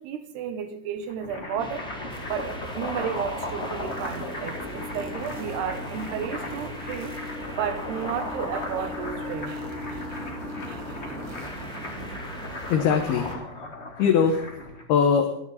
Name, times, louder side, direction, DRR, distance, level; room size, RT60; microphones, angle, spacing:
voice 1, 0.0-1.9 2.3-7.2 7.6-9.7 9.9-10.2 10.7-12.2, right 8 dB, 80° right, 9 dB, 3.1 m, -33 dB
sound 1, 1.0-14.8, left 2 dB, 30° left, 1.1 m, -37 dB
sound 2, 1.6-13.3, left 1 dB, 5° left, 0.5 m, -39 dB
sound 3, 2.1-13.3, right 3 dB, 45° right, 1.8 m, -44 dB
voice 2, 12.7-13.7 14.0-15.3, left 6 dB, 75° left, 3 dB, 3.0 m, -22 dB
28.5 x 9.7 x 4.2 m, 0.81 s
omnidirectional pair, 4.7 m